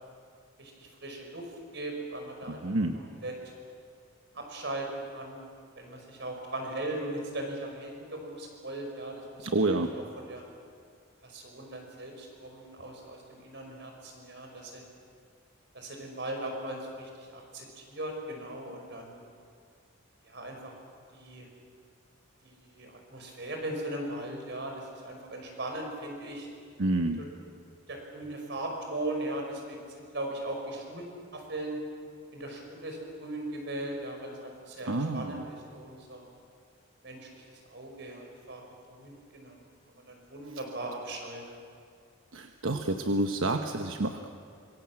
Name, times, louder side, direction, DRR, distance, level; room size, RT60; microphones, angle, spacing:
voice 1, 0.6-1.5 1.7-3.5 4.3-5.5 5.7-9.5 9.7-10.4 11.2-14.8 15.7-19.2 20.2-20.7 21.1-21.5 22.4-26.5 27.2-27.3 27.9-31.1 31.3-31.8 32.3-36.2 37.0-38.6 38.9-39.6 39.9-41.4, right 1 dB, 60° right, 2 dB, 5.6 m, -39 dB
voice 2, 2.5-3.0 9.4-9.9 26.8-27.2 34.9-35.4 42.3-44.3, right 2 dB, 85° right, 5 dB, 1.1 m, -29 dB
26.0 x 23.5 x 7.6 m, 2.3 s
head